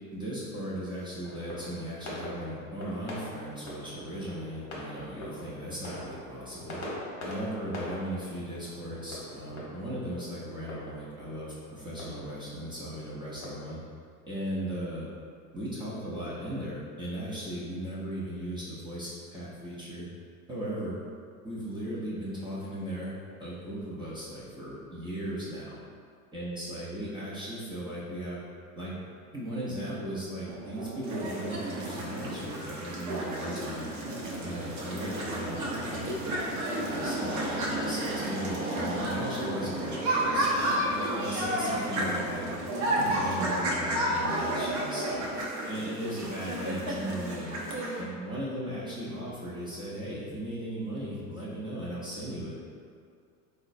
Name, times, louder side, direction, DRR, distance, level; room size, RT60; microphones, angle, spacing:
voice 1, 0.1-6.8 7.2-13.8 14.3-15.1 15.5-20.1 20.5-21.0 21.4-23.1 23.4-25.8 26.3-28.4 28.8-29.0 29.3-33.9 34.4-36.4 36.8-40.8 41.2-42.5 43.0-45.2 45.7-47.6 48.0-52.5, right 1 dB, 10° right, -9 dB, 0.6 m, -37 dB
sound 1, 1.2-13.5, left 1 dB, 35° left, 0.9 m, -43 dB
sound 2, 30.5-45.4, right 2 dB, 75° right, 0.8 m, -39 dB
sound 3, 31.0-48.0, right 1 dB, 45° right, 0.7 m, -32 dB
3.6 x 2.1 x 2.6 m, 2.2 s
hypercardioid pair, 90°, 43 cm